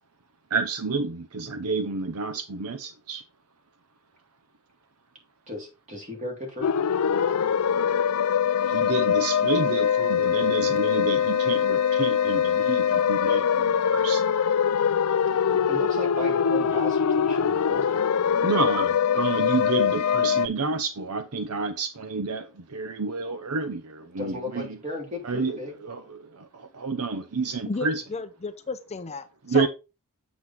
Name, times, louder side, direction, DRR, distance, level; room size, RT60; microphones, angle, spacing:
voice 1, 0.5-3.2 8.7-14.2 18.4-24.7 25.2-25.6 25.8-28.0 29.4-29.7, right 4 dB, 75° right, 0.8 m, -29 dB
voice 2, 5.5-6.7 15.3-18.2 24.2-25.8, left 2 dB, 35° right, 3.4 m, -36 dB
sound 1, 6.6-20.5, left 7 dB, 80° left, 0.5 m, -23 dB
voice 3, 27.7-29.7, left 4 dB, 30° left, 0.6 m, -33 dB
7.8 x 6.1 x 3.6 m
head